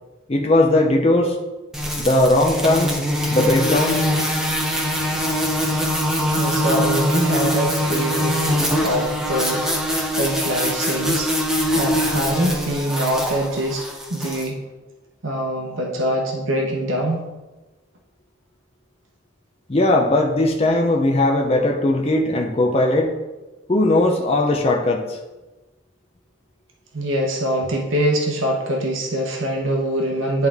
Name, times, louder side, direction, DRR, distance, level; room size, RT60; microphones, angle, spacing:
voice 1, 0.3-1.4 2.0-3.0 3.3-4.1 19.7-23.1 23.7-25.2, left 1 dB, 30° left, 1 dB, 0.6 m, -18 dB
sound 1, 1.7-14.5, equal, 5° right, 0.7 m, -23 dB
voice 2, 6.4-8.5 8.8-11.3 11.7-13.8 14.1-14.6 15.2-17.3 26.9-30.5, right 1 dB, 85° right, 0 dB, 1.0 m, -23 dB
10.5 x 3.8 x 3.6 m, 1.1 s
head